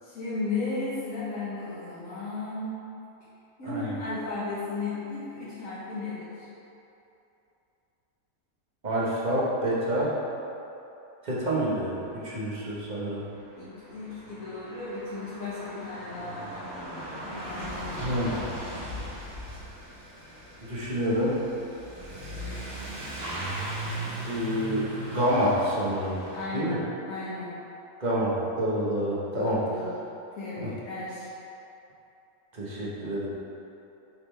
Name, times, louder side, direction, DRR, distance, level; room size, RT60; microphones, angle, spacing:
voice 1, 0.0-2.8 3.6-6.4 13.5-16.6 17.2-18.2 26.3-26.8 27.1-27.5 29.3-29.9 30.4-31.3, left 3 dB, 65° left, -11 dB, 1.6 m, -35 dB
voice 2, 8.8-10.1 11.2-13.3 18.0-18.4 20.7-21.4 24.3-26.2 26.5-26.8 28.0-29.6 30.6-30.7 32.5-33.3, equal, 30° right, -7 dB, 1.2 m, -28 dB
Truck / Accelerating revving vroom, 12.8-12.9 13.0-26.5, right 1 dB, 75° right, 1.8 m, -38 dB
8.6 x 3.9 x 3.4 m, 2.9 s
omnidirectional pair, 1.6 m